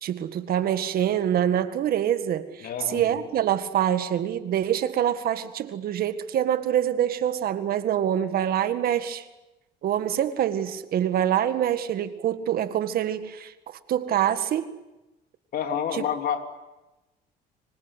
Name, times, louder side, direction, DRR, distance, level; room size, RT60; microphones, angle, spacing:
voice 1, 0.0-9.3 9.8-13.5 13.9-14.8, right 10 dB, 60° right, 11 dB, 1.9 m, -25 dB
voice 2, 2.6-3.2 15.5-16.5, left 8 dB, 60° left, 6 dB, 3.2 m, -29 dB
26.0 x 24.5 x 8.3 m, 1.0 s
cardioid pair, 110°, 17 cm